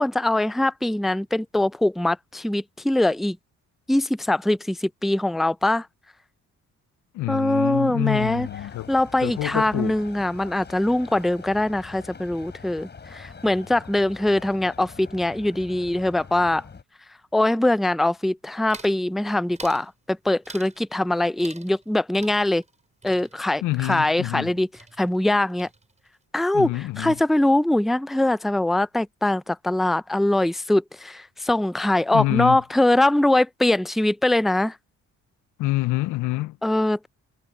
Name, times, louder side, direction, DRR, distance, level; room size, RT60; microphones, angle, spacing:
voice 1, 0.0-3.4 3.9-5.9 7.3-8.5 8.9-16.6 17.3-22.6 23.0-24.7 25.0-25.7 26.3-34.8 36.6-37.1, left 1 dB, ahead, 0.4 m, -22 dB
voice 2, 7.1-8.9 9.2-9.9 23.6-24.5 26.5-27.2 32.1-32.6 35.6-36.6, left 18 dB, 80° left, 0.5 m, -26 dB
sound 1, 8.0-16.8, left 5 dB, 35° left, 5.1 m, -44 dB
sound 2, 18.7-19.0 19.6-19.9 20.5-20.8 21.4-21.9 22.2-24.5 24.7-25.3 25.6-26.1, right 3 dB, 25° right, 5.1 m, -45 dB
cardioid pair, 90°, 30 cm